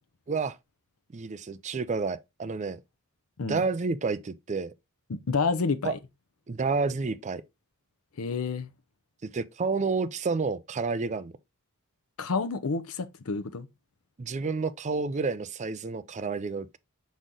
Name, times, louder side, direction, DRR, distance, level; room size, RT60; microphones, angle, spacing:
voice 1, 1.1-2.8 3.4-4.7 5.8-5.9 6.5-7.4 9.2-11.3 14.2-16.8, right 4 dB, 30° right, 0.4 m, -30 dB
voice 2, 5.1-6.0 8.2-8.7 12.2-13.7, left 4 dB, 70° left, 0.6 m, -29 dB
6.2 x 4.1 x 3.8 m
head